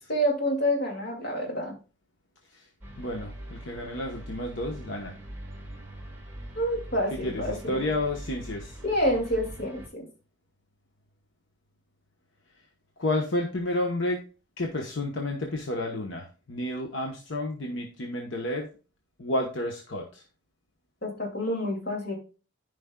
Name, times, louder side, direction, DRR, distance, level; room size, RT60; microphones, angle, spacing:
voice 1, 0.1-1.7 6.6-7.8 8.8-10.1 21.0-22.1, equal, 50° left, 0 dB, 2.5 m, -28 dB
sound 1, 2.8-9.9, right 1 dB, 10° right, 2.0 m, -42 dB
voice 2, 3.0-5.1 7.2-8.8 13.0-14.2 14.6-18.7 19.2-20.2, left 1 dB, 75° left, 1 dB, 1.1 m, -31 dB
13.5 x 5.1 x 2.3 m, 0.34 s
head